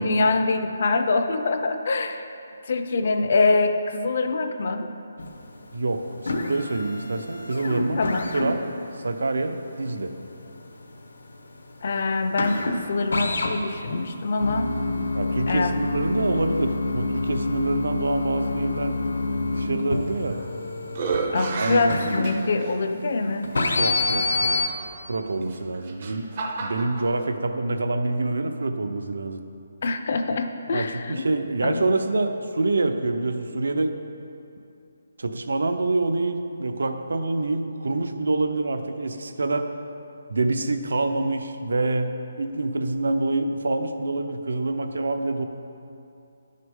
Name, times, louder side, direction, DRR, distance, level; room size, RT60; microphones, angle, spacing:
voice 1, 0.0-2.3 2.7-4.9 8.0-8.3 11.8-14.7 15.5-15.8 21.3-23.5 29.8-31.3 31.6-32.0, left 3 dB, 35° left, 6 dB, 0.4 m, -24 dB
sound 1, 5.2-5.6 5.9-23.0 23.4-24.7, left 2 dB, 85° left, 0.9 m, -27 dB
voice 2, 5.7-8.0 8.3-8.6 9.0-10.1 15.1-19.0 19.3-20.4 21.6-22.2 23.8-24.6 25.1-26.3 26.6-29.4 30.7-33.9 35.2-39.7 40.3-45.5, right 2 dB, 80° right, 7 dB, 0.7 m, -26 dB
sound 2, 20.1-20.5 20.9-22.8 23.5-23.6 25.4-27.1, right 4 dB, 25° right, 0.5 m, -31 dB
10.5 x 6.5 x 3.6 m, 2.7 s
hypercardioid pair, 180°, 0 cm